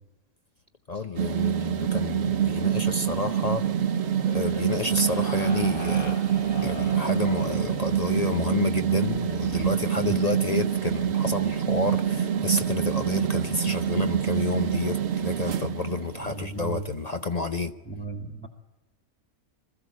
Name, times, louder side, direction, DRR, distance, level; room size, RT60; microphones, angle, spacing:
voice 1, 0.9-3.7 4.3-6.2 6.6-17.7, left 3 dB, 40° left, 0.5 m, -30 dB
sound 1, 1.1-16.5, right 9 dB, 50° right, 1.0 m, -26 dB
sound 2, 4.2-8.1 9.0-9.7, left 1 dB, 65° left, 3.6 m, -39 dB
voice 2, 16.3-16.9 17.8-18.5, right 4 dB, 5° left, 1.6 m, -35 dB
22.0 x 14.0 x 8.4 m
omnidirectional pair, 1.6 m